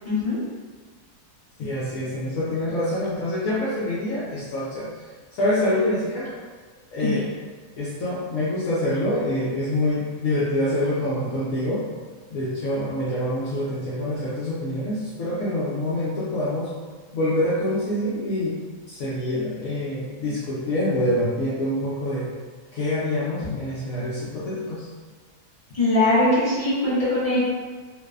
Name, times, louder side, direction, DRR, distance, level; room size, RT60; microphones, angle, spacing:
voice 1, 0.0-0.4 7.0-7.2 23.4-23.5 25.7-27.4, left 2 dB, 35° left, -11 dB, 0.6 m, -21 dB
voice 2, 1.6-4.9 5.3-6.3 6.9-7.2 7.8-11.9 12.3-16.7 17.1-18.6 18.9-22.3 22.7-24.9, left 1 dB, 70° left, -9 dB, 0.9 m, -26 dB
3.1 x 2.0 x 2.3 m, 1.5 s
omnidirectional pair, 1.7 m